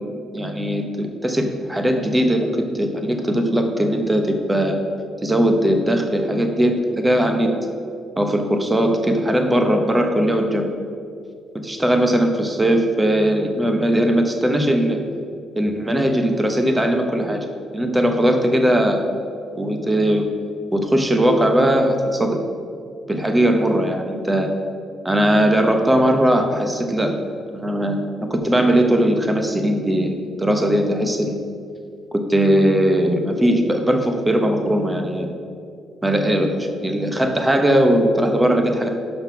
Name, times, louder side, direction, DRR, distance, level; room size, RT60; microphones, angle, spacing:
voice 1, 0.3-2.5 2.7-4.8 5.2-7.5 8.2-10.7 11.6-15.0 15.6-17.5 17.7-19.0 19.5-20.2 20.7-22.4 23.1-24.5 25.0-27.1 27.5-31.4 32.1-35.3 36.0-38.9, equal, 15° right, 4 dB, 0.9 m, -19 dB
5.8 x 5.5 x 5.9 m, 2.4 s
cardioid pair, 90°, 0 cm